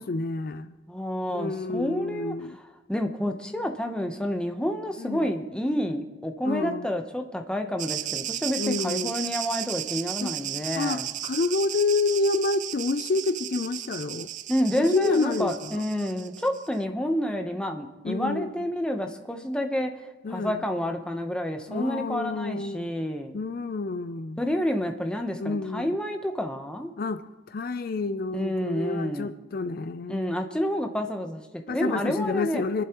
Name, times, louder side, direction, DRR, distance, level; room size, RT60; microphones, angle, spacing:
voice 1, 0.0-0.7 1.3-2.6 5.0-5.3 6.4-6.9 8.6-9.1 10.2-10.3 10.8-14.3 14.8-15.8 18.0-18.7 20.2-20.7 21.7-22.9 23.3-24.4 25.4-25.9 27.0-30.4 31.7-32.8, left 3 dB, 45° left, 12 dB, 0.4 m, -29 dB
voice 2, 0.9-2.4 2.9-11.1 14.5-19.9 20.3-23.3 24.4-26.9 28.3-29.3 30.1-32.6, equal, 5° left, 4 dB, 0.8 m, -29 dB
sound 1, 7.8-16.7, right 12 dB, 40° right, 0.3 m, -35 dB
28.0 x 11.0 x 3.0 m, 1.2 s
head